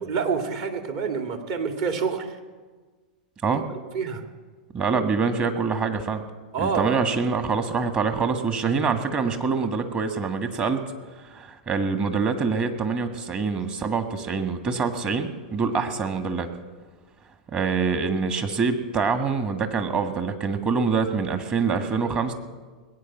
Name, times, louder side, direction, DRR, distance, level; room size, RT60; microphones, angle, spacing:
voice 1, 0.0-2.4 3.5-3.6 3.9-4.2 6.5-7.0, right 5 dB, 50° right, 6 dB, 2.1 m, -27 dB
voice 2, 4.7-6.2 6.6-10.8 11.3-16.5 17.5-22.3, right 5 dB, 30° right, 8 dB, 1.6 m, -25 dB
19.5 x 8.9 x 7.3 m, 1.4 s
hypercardioid pair, 100°, 4 cm